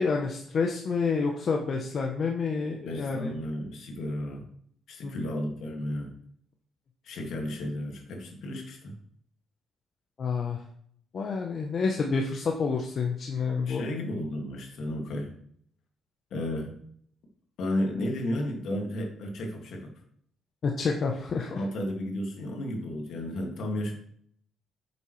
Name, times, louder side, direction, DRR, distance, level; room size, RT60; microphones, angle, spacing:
voice 1, 0.0-3.3 5.0-5.1 10.2-10.6 11.1-13.9 20.6-21.6, left 4 dB, 50° left, 1 dB, 0.9 m, -28 dB
voice 2, 2.8-4.4 4.9-6.1 7.0-9.0 13.7-15.3 16.3-16.8 17.6-19.9 21.5-23.9, left 1 dB, 75° left, 1 dB, 2.2 m, -33 dB
8.9 x 7.1 x 3.3 m, 0.65 s
cardioid pair, 90°, 0 cm